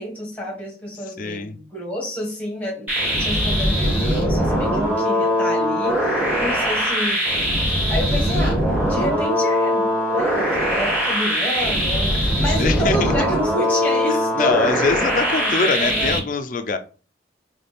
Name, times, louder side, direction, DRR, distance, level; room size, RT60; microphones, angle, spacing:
voice 1, 0.0-7.3 7.9-16.2, equal, 10° left, 1.6 m, -29 dB
voice 2, 1.2-1.6 12.6-13.1 14.3-16.8, left 4 dB, 45° left, 0.4 m, -23 dB
sound 1, 2.9-16.2, equal, 10° right, 2.3 m, -21 dB
4.1 x 3.3 x 3.4 m
head